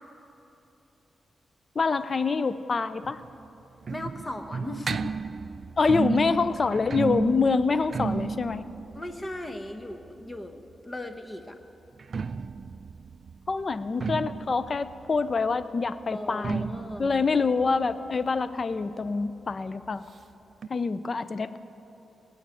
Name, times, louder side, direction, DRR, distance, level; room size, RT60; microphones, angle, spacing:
voice 1, 1.8-3.2 5.8-8.6 13.5-16.7 17.0-20.1 20.7-21.6, left 4 dB, 45° left, 14 dB, 0.5 m, -26 dB
sound 1, 3.0-10.7 11.9-19.2 19.5-19.6 19.8-19.9 20.6-20.7, right 5 dB, 55° right, 0.3 m, -34 dB
voice 2, 3.9-5.1 8.9-11.6 16.1-17.1, left 1 dB, 20° left, 6 dB, 1.1 m, -38 dB
18.0 x 6.6 x 9.1 m, 2.9 s
cardioid pair, 75°, 0 cm